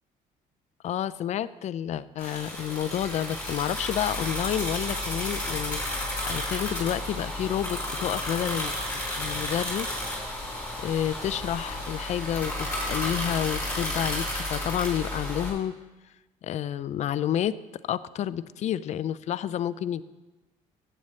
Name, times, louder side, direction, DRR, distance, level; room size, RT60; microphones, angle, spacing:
voice 1, 0.8-10.0 10.3-10.4 10.8-15.7 16.4-17.5 17.9-20.0, left 10 dB, 50° left, 16 dB, 0.4 m, -30 dB
sound 1, 2.2-15.5, left 1 dB, 10° left, 4.3 m, -32 dB
15.0 x 8.7 x 3.2 m, 1.1 s
cardioid pair, 115°, 15 cm